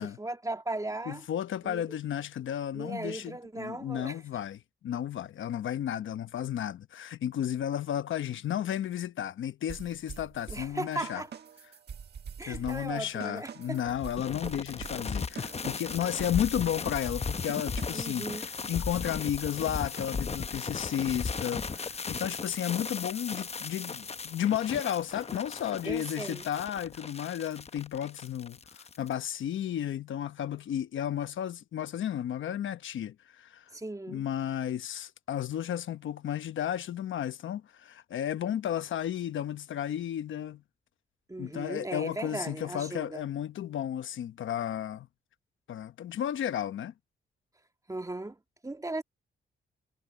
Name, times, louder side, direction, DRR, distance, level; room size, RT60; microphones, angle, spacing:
voice 1, 0.0-1.3 1.6-2.0 2.7-4.2 10.5-11.3 12.4-13.9 17.9-18.5 25.9-26.4 33.7-34.3 41.3-43.3 47.9-49.0, right 2 dB, 15° right, 2.3 m, -37 dB
voice 2, 1.1-11.2 12.5-18.3 18.7-33.6 34.1-40.6 41.4-45.1 45.7-46.9, left 10 dB, 75° left, 1.0 m, -33 dB
sound 1, 9.7-18.2, right 7 dB, 55° right, 1.3 m, -45 dB
sound 2, 13.8-29.1, left 5 dB, 30° left, 0.8 m, -36 dB
cardioid pair, 80°, 20 cm